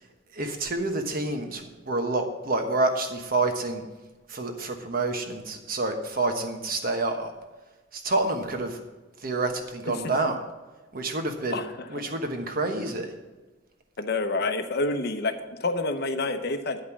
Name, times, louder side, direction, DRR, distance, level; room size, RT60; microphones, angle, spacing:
voice 1, 0.3-3.8 4.3-7.3 7.9-8.8 9.2-10.4 10.9-11.6 11.9-13.1, right 2 dB, 50° right, 5 dB, 1.2 m, -28 dB
voice 2, 11.5-11.9 14.0-15.3 15.6-16.8, left 3 dB, 55° left, 8 dB, 0.8 m, -28 dB
9.8 x 5.2 x 7.2 m, 1.2 s
head